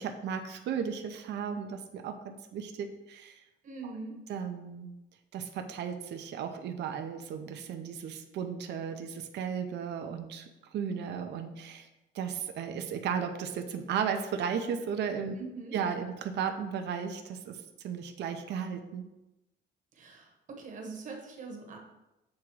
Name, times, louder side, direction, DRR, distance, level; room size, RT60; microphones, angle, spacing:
voice 1, 0.0-3.4 3.8-3.9 4.3-5.0 5.3-10.5 10.7-11.9 12.1-15.4 15.7-19.1, right 7 dB, 60° right, 6 dB, 0.6 m, -35 dB
voice 2, 3.6-4.2 15.4-15.8 19.9-21.8, right 4 dB, 40° right, 2 dB, 1.1 m, -42 dB
7.4 x 3.6 x 4.7 m, 0.96 s
cardioid pair, 175°, 20 cm